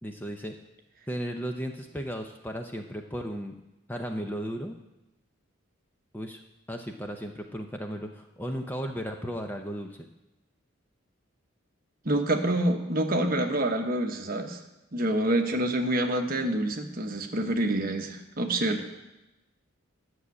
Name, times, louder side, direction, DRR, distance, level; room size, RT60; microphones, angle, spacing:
voice 1, 0.0-0.6 1.1-3.5 3.9-4.8 6.1-6.4 6.7-10.0, equal, 10° left, 4 dB, 0.6 m, -35 dB
voice 2, 12.0-14.6 14.9-18.9, right 1 dB, 40° right, 4 dB, 1.1 m, -27 dB
11.0 x 6.4 x 8.2 m, 0.98 s
head